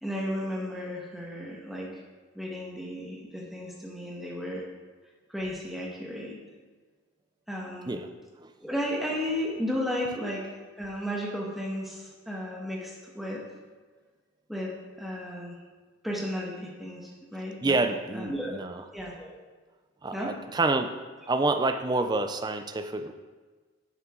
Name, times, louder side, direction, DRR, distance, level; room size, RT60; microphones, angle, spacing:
voice 1, 0.0-2.0 2.3-4.6 5.3-6.4 7.5-8.0 8.6-13.5 14.5-15.6 16.0-17.8 18.1-18.5 18.8-19.4 20.1-20.4, equal, ahead, -3 dB, 1.5 m, -34 dB
voice 2, 17.6-18.8 20.0-20.9 21.3-23.1, right 2 dB, 20° right, 7 dB, 0.5 m, -28 dB
11.0 x 6.9 x 3.8 m, 1.4 s
head